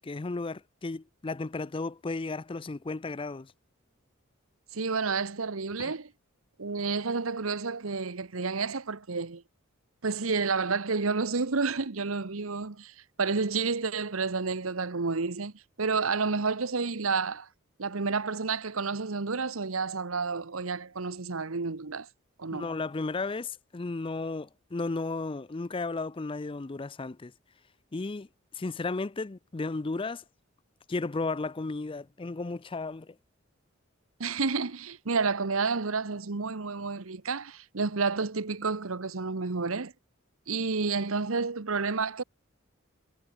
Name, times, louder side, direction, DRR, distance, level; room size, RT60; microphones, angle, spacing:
voice 1, 0.0-3.5 5.8-5.9 22.5-27.3 27.9-28.3 28.5-30.2 30.9-33.2, left 3 dB, 25° left, 0.5 m, -34 dB
voice 2, 4.7-6.1 6.6-9.4 10.0-15.5 15.8-17.5 17.8-22.1 22.4-22.7 34.2-39.9 40.5-42.2, right 4 dB, 85° right, 1.1 m, -30 dB
head